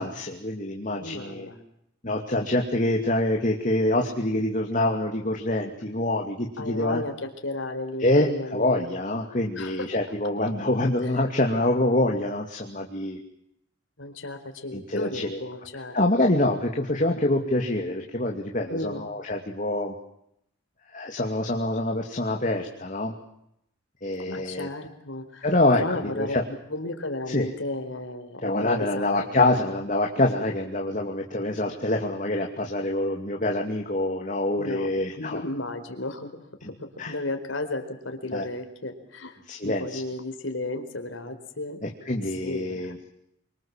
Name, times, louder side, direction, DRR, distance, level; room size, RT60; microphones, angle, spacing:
voice 1, 0.0-1.5 2.0-7.0 8.0-13.2 14.7-15.4 15.9-19.9 20.9-23.1 24.0-24.7 25.4-26.4 27.3-27.5 28.4-35.4 37.0-37.1 38.3-38.4 39.5-40.0 41.8-43.0, left 1 dB, 40° left, 2 dB, 2.6 m, -25 dB
voice 2, 1.0-1.6 5.8-6.0 6.6-8.8 9.5-9.9 14.0-16.0 18.7-19.0 24.2-25.5 25.8-26.4 26.7-29.5 34.6-34.9 35.1-36.3 36.6-41.8 42.1-42.9, left 2 dB, 75° left, 6 dB, 4.4 m, -34 dB
28.5 x 24.5 x 7.4 m, 0.76 s
head